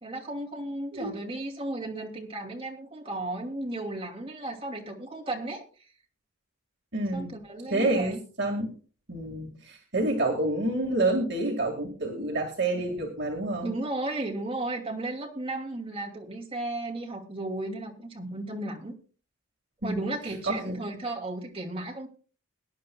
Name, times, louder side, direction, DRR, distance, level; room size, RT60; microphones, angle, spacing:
voice 1, 0.0-5.6 7.1-8.2 13.6-18.9 19.8-22.1, right 2 dB, 25° right, 1 dB, 2.5 m, -34 dB
voice 2, 6.9-7.3 7.7-8.7 9.1-13.7 19.8-20.0 20.5-20.7, right 2 dB, 55° right, 1 dB, 2.0 m, -28 dB
22.0 x 10.5 x 2.3 m, 0.38 s
head